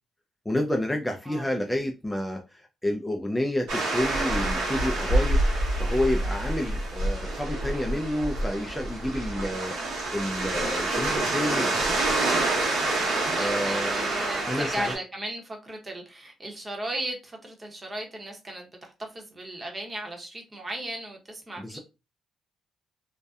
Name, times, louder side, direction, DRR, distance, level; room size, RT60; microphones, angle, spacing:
voice 1, 0.5-9.8 10.1-12.0 13.4-14.1 14.4-14.9 21.6-21.8, left 1 dB, 10° left, 0.3 m, -30 dB
sound 1, 3.7-14.9, right 2 dB, 85° right, 1.0 m, -27 dB
voice 2, 13.0-21.8, right 1 dB, 25° right, 0.9 m, -36 dB
2.6 x 2.1 x 2.3 m
cardioid pair, 90°, 0 cm